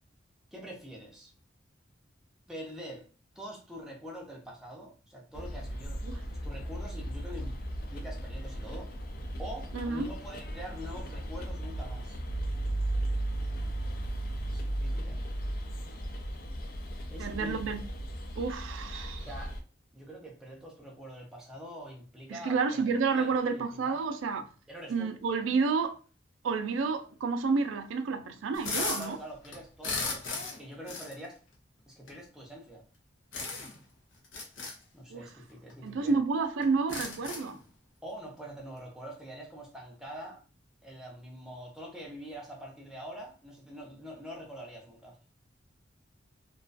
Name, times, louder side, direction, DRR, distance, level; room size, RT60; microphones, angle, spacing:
voice 1, 0.5-1.3 2.5-3.1 3.3-7.6 7.9-8.9 9.4-12.2 14.5-15.2 17.1-17.7 19.2-19.6 19.9-24.0 24.7-25.1 28.8-31.4 31.9-32.8 34.9-36.2 38.0-40.4 40.8-45.2, equal, 5° right, 0.5 m, -45 dB
sound 1, 5.3-19.6, right 1 dB, 50° left, 0.3 m, -36 dB
voice 2, 9.7-10.1 17.2-17.8 18.4-19.3 22.3-24.5 24.9-26.0 26.4-29.2 35.1-35.3 35.8-37.6, right 4 dB, 85° right, 0.3 m, -30 dB
sound 2, 28.5-29.1 29.4-30.6 30.9-31.1 32.1-32.2 33.3-33.8 34.2-34.7 35.7-35.8 36.1-36.2 36.6-37.6, left 3 dB, 90° left, 0.7 m, -35 dB
2.3 x 2.2 x 2.4 m
head